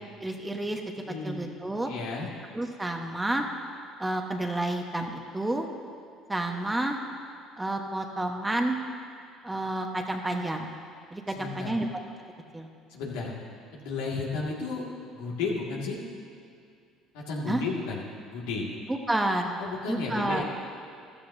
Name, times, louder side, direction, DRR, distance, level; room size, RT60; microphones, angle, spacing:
voice 1, 0.2-0.8 1.1-1.9 2.5-3.5 4.0-5.7 6.3-7.0 7.6-8.8 9.4-10.7 11.1-11.9 12.5-12.7 17.5-17.6 18.9-19.6 19.9-20.4, right 1 dB, 15° right, 3 dB, 1.2 m, -30 dB
voice 2, 1.0-1.4 1.9-2.3 11.3-11.7 12.9-13.3 13.7-16.0 17.1-18.0 18.3-18.7 19.6-20.4, left 4 dB, 80° left, -3 dB, 2.1 m, -33 dB
14.0 x 13.0 x 2.8 m, 2.3 s
hypercardioid pair, 70°, 0 cm